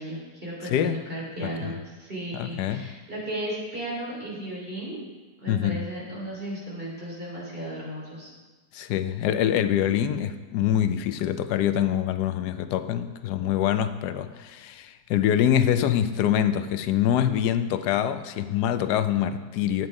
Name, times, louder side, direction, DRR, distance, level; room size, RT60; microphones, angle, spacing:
voice 1, 0.0-5.0 5.4-8.3, right 1 dB, 35° right, -5 dB, 3.3 m, -35 dB
voice 2, 0.6-1.0 1.4-1.7 2.3-2.9 5.5-5.8 8.7-19.9, left 10 dB, 90° left, 10 dB, 1.2 m, -25 dB
9.5 x 8.8 x 4.7 m, 1.3 s
omnidirectional pair, 1.7 m